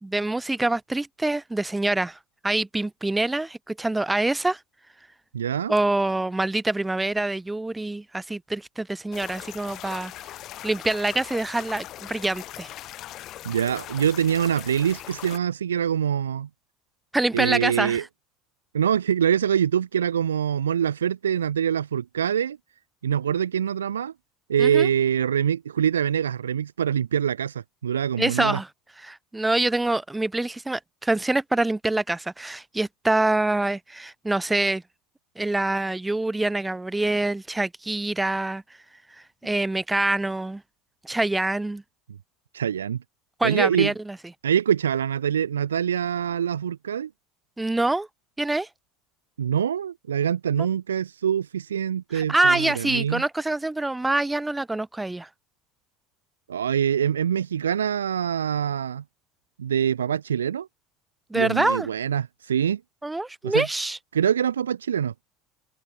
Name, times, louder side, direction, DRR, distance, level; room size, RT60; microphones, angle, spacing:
voice 1, 0.1-2.2 2.4-4.6 5.7-10.1 10.6-12.7 17.1-18.1 24.6-24.9 28.2-28.7 29.0-34.8 35.4-38.6 39.4-40.6 41.0-41.8 43.4-44.2 47.6-48.1 48.4-48.7 50.6-50.7 52.1-55.3 61.3-61.9 63.0-64.0, right 2 dB, 10° right, 0.4 m, -25 dB
voice 2, 5.3-5.7 13.4-16.5 17.3-18.0 18.7-22.6 23.0-24.1 24.5-28.6 42.5-43.0 43.4-43.9 44.4-47.1 49.4-53.2 56.5-59.0 59.6-60.7 61.3-62.8 63.4-63.7 64.1-65.1, right 8 dB, 85° right, 0.6 m, -24 dB
sound 1, 9.1-15.4, left 14 dB, 50° left, 4.6 m, -40 dB
hypercardioid pair, 75°, 0 cm